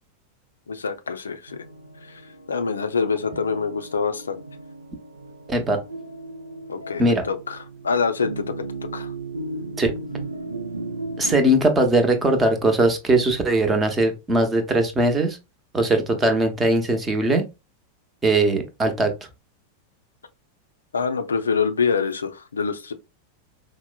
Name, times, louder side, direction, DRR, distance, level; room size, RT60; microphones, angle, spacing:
voice 1, 0.7-1.6 2.1-2.2 2.5-4.4 6.7-8.7 8.9-9.1 20.9-22.9, left 5 dB, 70° left, 0.4 m, -25 dB
sound 1, 1.5-11.4, right 2 dB, 80° right, 0.4 m, -36 dB
voice 2, 5.5-5.8 7.0-7.2 9.8-9.9 11.2-15.4 15.7-17.5 18.2-19.1, right 2 dB, 15° right, 0.8 m, -20 dB
4.5 x 2.1 x 2.3 m
figure-of-eight pair, 90°, 0 cm